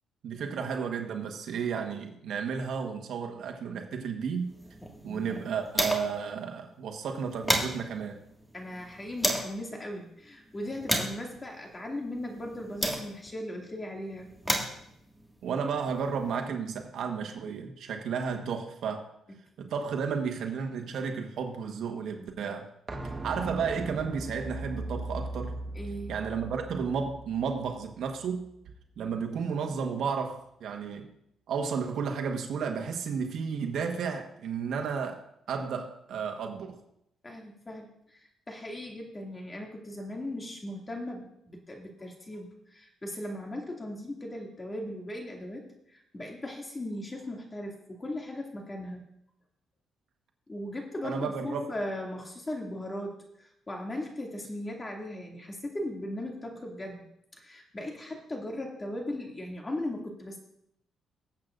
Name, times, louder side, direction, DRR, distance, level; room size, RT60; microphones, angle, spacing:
voice 1, 0.2-4.5 5.0-8.2 15.4-19.1 19.6-22.7 23.2-25.6 26.1-28.5 29.0-31.1 31.5-36.8 51.0-51.7, right 6 dB, 70° right, 4 dB, 1.3 m, -33 dB
sound 1, 4.5-6.3 6.6-6.7 7.0-9.6 10.2-13.4 14.1-16.3, equal, 5° left, 1.9 m, -33 dB
voice 2, 5.0-5.4 8.5-14.3 25.7-26.2 37.2-49.0 50.5-57.0 57.4-60.4, left 1 dB, 25° left, 0 dB, 2.4 m, -38 dB
sound 2, 22.9-28.5 28.8-28.9, right 1 dB, 30° right, 1.3 m, -39 dB
19.0 x 8.0 x 2.6 m, 0.77 s
cardioid pair, 90°, 0 cm